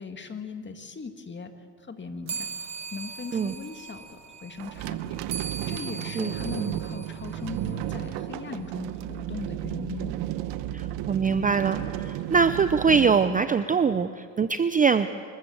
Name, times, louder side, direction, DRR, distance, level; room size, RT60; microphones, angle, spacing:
voice 1, 0.0-2.5 2.9-10.1, left 5 dB, 25° left, 7 dB, 2.0 m, -39 dB
sound 1, 2.3-8.1, right 6 dB, 35° right, 1.6 m, -40 dB
sound 2, 4.6-14.0, right 13 dB, 70° right, 1.1 m, -33 dB
voice 2, 10.7-15.1, right 5 dB, 20° right, 11 dB, 0.5 m, -23 dB
25.5 x 14.0 x 7.8 m, 2.2 s
supercardioid pair, 95°, 44 cm